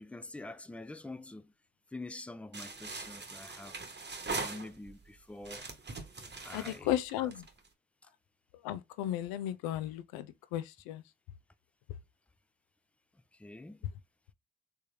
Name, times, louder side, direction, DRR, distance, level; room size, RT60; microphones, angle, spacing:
voice 1, 0.0-1.5 1.9-3.8 4.3-5.7 6.4-7.3 8.0-8.1 13.3-13.9, left 2 dB, 5° left, 0.3 m, -46 dB
sound 1, 2.5-5.0 5.4-7.7, right 3 dB, 30° right, 1.0 m, -41 dB
voice 2, 6.5-7.5 8.6-10.3 10.5-11.0, left 12 dB, 75° left, 0.5 m, -34 dB
3.3 x 3.3 x 2.7 m
hypercardioid pair, 45°, 36 cm